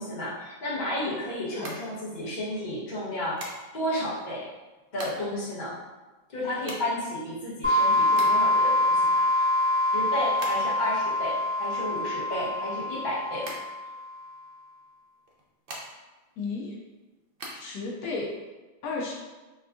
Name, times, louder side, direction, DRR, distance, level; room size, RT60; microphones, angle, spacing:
voice 1, 0.0-3.4 3.7-4.5 4.9-5.8 6.3-9.5 9.9-13.5, left 1 dB, 35° left, -8 dB, 1.0 m, -32 dB
sound 1, 1.6-2.5 3.4-4.0 4.6-5.4 5.7-5.8 6.0-8.6 9.0-10.9 11.2-13.0 13.4-14.4 15.2-16.2 16.6-17.5, right 1 dB, 60° right, 0.6 m, -41 dB
sound 2, 7.6-14.1, left 1 dB, 10° left, 1.0 m, -25 dB
voice 2, 16.4-16.8 17.5-18.3 18.8-19.1, left 3 dB, 80° left, -2 dB, 1.1 m, -33 dB
4.4 x 2.2 x 2.4 m, 1.2 s
omnidirectional pair, 1.5 m